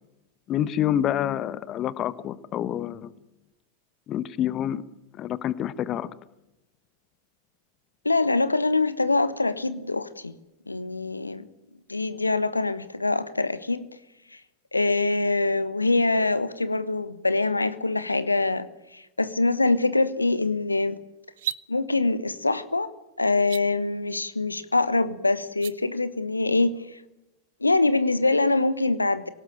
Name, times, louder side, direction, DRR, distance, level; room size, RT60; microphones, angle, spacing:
voice 1, 0.5-3.1 4.1-4.8 5.1-6.1, left 11 dB, 30° left, 17 dB, 1.1 m, -27 dB
voice 2, 8.0-10.3 10.7-11.4 11.9-13.8 14.7-18.7 18.9-21.0 21.7-22.9 23.2-27.0 27.6-29.3, left 3 dB, 80° left, 14 dB, 1.2 m, -24 dB
sound 1, 21.3-21.6 23.4-23.6 25.5-25.7, right 13 dB, 55° right, 0.7 m, -32 dB
25.0 x 18.5 x 9.0 m, 0.95 s
figure-of-eight pair, 90°, 0 cm